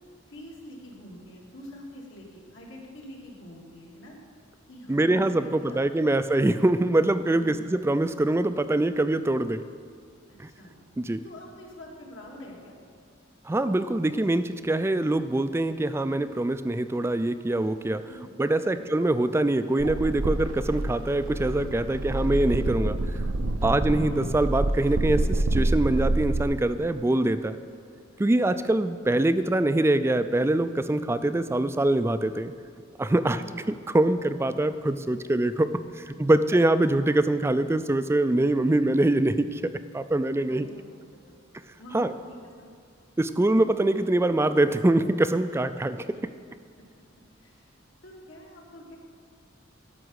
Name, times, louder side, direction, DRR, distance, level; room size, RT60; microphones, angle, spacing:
voice 1, 0.3-4.2 4.7-6.2 10.3-10.8 11.2-12.7 18.1-18.3 18.6-18.8 23.6-23.8 28.1-28.5 33.2-33.6 36.0-36.9 40.4-40.8 41.3-41.4 41.8-42.7 45.9-46.2 47.4-47.7 48.0-49.0, equal, 70° left, -2 dB, 2.2 m, -46 dB
voice 2, 4.9-9.6 10.4-10.5 11.0-11.2 13.5-18.0 18.4-23.0 23.6-27.6 28.2-32.5 33.0-33.4 33.7-35.7 35.9-40.7 41.9-42.1 43.2-46.0, right 1 dB, 15° right, 12 dB, 0.3 m, -24 dB
sound 1, 19.8-26.4, right 2 dB, 85° right, 0.7 m, -27 dB
12.5 x 6.1 x 6.4 m, 2.2 s
head